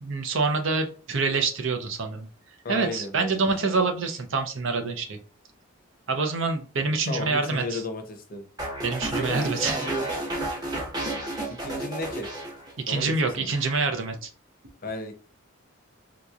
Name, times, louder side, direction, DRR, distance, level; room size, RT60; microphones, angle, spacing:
voice 1, 0.0-2.3 2.7-5.2 6.1-7.8 8.8-9.8 12.8-14.3, right 4 dB, 65° right, 0.6 m, -26 dB
voice 2, 2.6-3.8 7.1-8.4 9.2-10.1 11.6-12.3 12.9-13.5 14.8-15.1, left 1 dB, 45° left, 0.6 m, -34 dB
sound 1, 8.6-13.0 13.3-13.7, right 1 dB, 20° right, 0.8 m, -32 dB
3.8 x 2.9 x 2.4 m
head